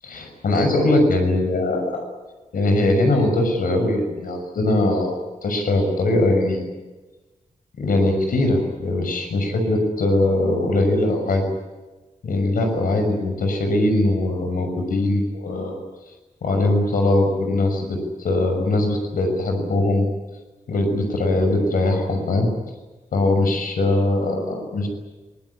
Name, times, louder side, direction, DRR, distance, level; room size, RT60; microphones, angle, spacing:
voice 1, 0.1-2.0 2.5-5.1 5.4-6.7 7.8-11.4 12.2-15.8 16.4-20.1 20.7-22.5 23.1-24.9, left 2 dB, 85° left, 4 dB, 6.5 m, -21 dB
24.0 x 21.0 x 9.9 m, 1.2 s
wide cardioid pair, 160°, 14 cm